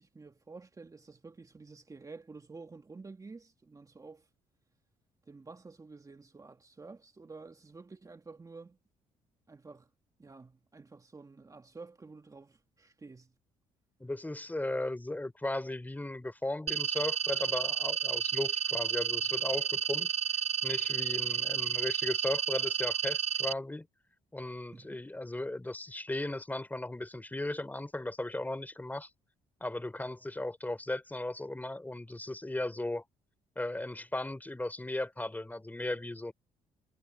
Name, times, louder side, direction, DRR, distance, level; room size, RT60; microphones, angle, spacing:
voice 1, 0.0-4.3 5.3-8.8 9.5-9.9 10.2-13.3 24.7-25.0, right 4 dB, 25° right, 2.0 m, -50 dB
voice 2, 14.0-20.1 20.6-23.9 24.3-29.1 29.6-33.0 33.6-36.3, left 1 dB, 10° left, 3.5 m, -36 dB
sound 1, 16.7-23.5, right 8 dB, 50° right, 0.7 m, -31 dB
supercardioid pair, 70°, 14 cm